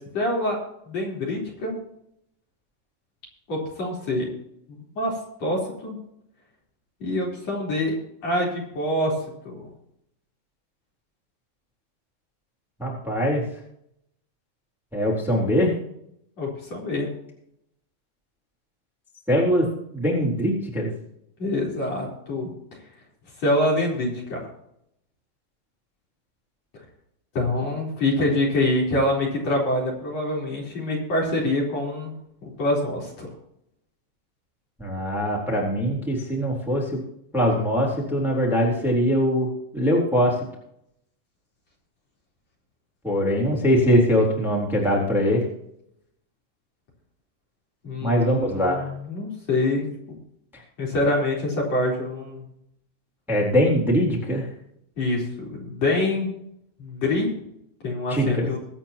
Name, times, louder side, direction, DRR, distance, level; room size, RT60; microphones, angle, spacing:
voice 1, 0.1-0.6 0.8-1.8 3.5-4.3 4.7-5.1 5.4-6.0 7.0-7.9 8.2-9.2 9.4-9.7 16.4-17.1 21.4-22.5 23.4-24.4 27.3-32.1 32.4-33.3 47.8-49.9 50.8-52.4 55.0-56.3 56.8-57.3 57.8-58.6, left 1 dB, 50° left, -3 dB, 5.1 m, -25 dB
voice 2, 12.8-13.4 14.9-15.8 19.3-19.6 19.9-20.9 34.8-37.0 37.3-40.3 43.0-45.5 48.0-48.9 53.3-54.4 58.1-58.5, equal, ahead, -3 dB, 3.4 m, -22 dB
23.0 x 9.0 x 3.0 m, 0.74 s
omnidirectional pair, 4.0 m